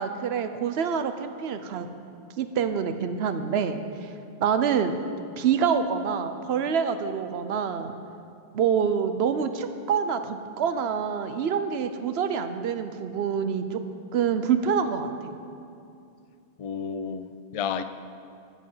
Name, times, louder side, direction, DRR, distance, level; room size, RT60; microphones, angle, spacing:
voice 1, 0.0-1.9 2.4-4.1 4.4-5.0 5.4-8.0 8.5-13.8 14.1-15.3, right 7 dB, 70° right, 9 dB, 0.9 m, -26 dB
voice 2, 16.6-17.8, left 7 dB, 65° left, 11 dB, 0.3 m, -31 dB
11.5 x 7.9 x 5.6 m, 2.5 s
omnidirectional pair, 1.2 m